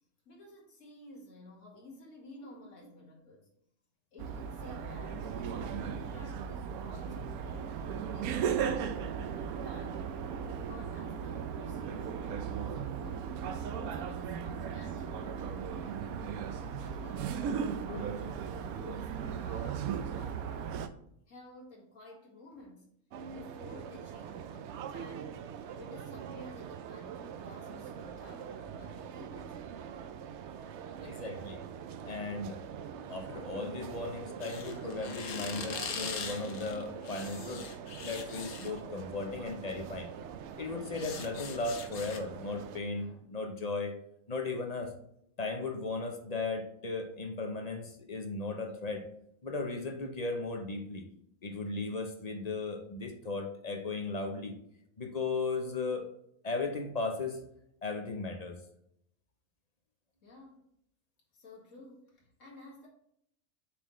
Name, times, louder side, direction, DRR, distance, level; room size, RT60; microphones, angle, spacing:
voice 1, 0.3-3.5 4.1-10.1 10.5-13.4 13.6-16.1 16.7-20.8 21.3-22.9 23.3-25.4 25.8-29.7 60.2-60.6 61.3-62.9, left 1 dB, 60° left, -3 dB, 2.2 m, -52 dB
sound 1, 4.2-20.9, right 7 dB, 85° right, 1.1 m, -36 dB
sound 2, 23.1-42.8, right 7 dB, 65° right, 0.7 m, -44 dB
voice 2, 31.0-31.6 32.1-32.6 33.1-37.7 38.0-40.1 40.6-44.0 44.3-44.9 45.4-49.1 49.4-51.0 51.4-54.5 55.0-56.1 56.4-57.4 57.8-58.6, left 3 dB, 35° left, 4 dB, 0.8 m, -36 dB
sound 3, 34.4-38.8 39.8-40.0 40.3-42.2, left 6 dB, 85° left, 1.4 m, -42 dB
7.0 x 4.4 x 3.1 m, 0.73 s
omnidirectional pair, 1.5 m